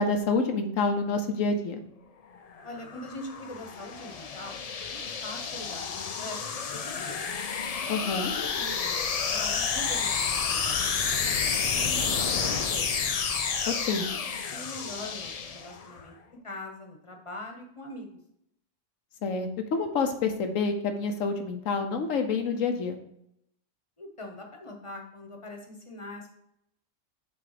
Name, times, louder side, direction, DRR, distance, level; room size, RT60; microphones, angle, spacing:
voice 1, 0.0-1.8 7.9-8.3 13.7-14.1 19.2-23.0, left 4 dB, 85° left, 6 dB, 1.2 m, -28 dB
sound 1, 2.5-16.0, left 6 dB, 55° left, 0.4 m, -30 dB
voice 2, 2.6-4.6 4.9-7.2 8.3-12.9 14.0-14.2 14.5-16.1 16.4-18.2 24.0-26.3, left 1 dB, 25° left, 3 dB, 1.1 m, -43 dB
7.6 x 3.5 x 5.0 m, 0.77 s
omnidirectional pair, 1.3 m